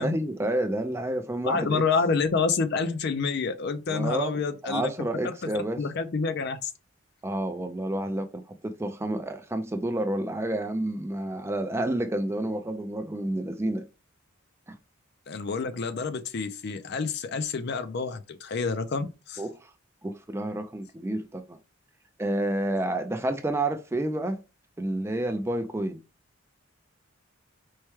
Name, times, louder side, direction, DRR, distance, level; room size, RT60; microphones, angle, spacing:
voice 1, 0.0-1.8 3.9-5.8 7.2-13.9 14.7-14.8 19.4-19.7 20.0-21.6 22.2-24.4 24.8-26.0, right 1 dB, 10° right, 0.3 m, -29 dB
voice 2, 1.4-4.9 5.2-5.5 5.8-6.7 15.3-19.4, left 4 dB, 55° left, 0.4 m, -28 dB
4.5 x 2.2 x 3.0 m
head